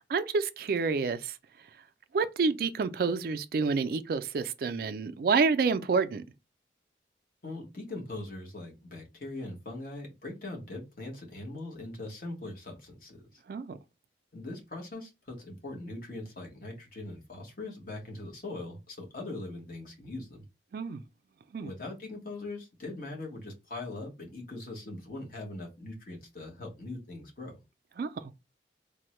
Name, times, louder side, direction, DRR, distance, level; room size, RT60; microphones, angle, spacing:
voice 1, 0.1-1.3 2.1-6.2 13.5-13.8 20.7-21.0 21.5-21.7 28.0-28.1, right 4 dB, 55° right, 0.3 m, -28 dB
voice 2, 7.4-13.4 14.3-20.4 21.6-27.6, left 2 dB, 50° left, 1.1 m, -41 dB
3.4 x 2.1 x 3.0 m
head